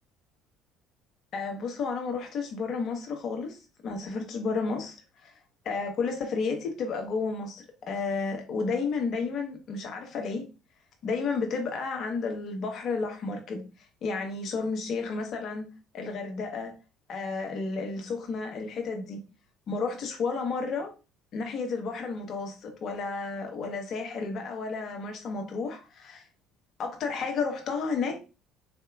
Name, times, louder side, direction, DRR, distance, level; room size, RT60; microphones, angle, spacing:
voice 1, 1.3-5.0 5.2-5.3 5.6-10.4 11.0-13.6 14.0-15.7 15.9-16.8 17.1-19.2 19.7-20.9 21.3-26.2 26.8-28.2, left 4 dB, 50° left, 1.1 m, -32 dB
4.3 x 2.7 x 2.3 m
hypercardioid pair, 55°, 0 cm